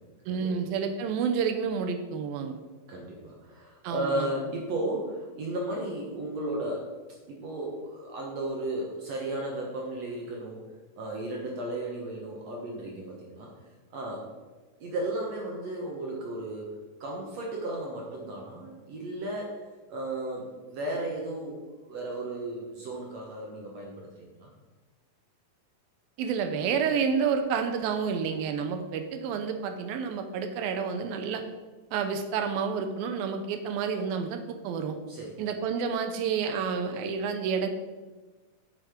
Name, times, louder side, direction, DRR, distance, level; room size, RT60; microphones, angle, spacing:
voice 1, 0.3-2.6 3.8-4.3 26.2-31.4 31.9-35.0 35.4-37.7, right 6 dB, 80° right, 6 dB, 2.4 m, -29 dB
voice 2, 2.9-6.9 7.3-10.6 11.0-13.5 13.9-14.2 14.8-19.6 19.9-21.6 21.9-24.5 35.1-35.5, right 1 dB, 60° right, -2 dB, 1.8 m, -34 dB
7.8 x 6.4 x 5.0 m, 1.3 s
omnidirectional pair, 4.4 m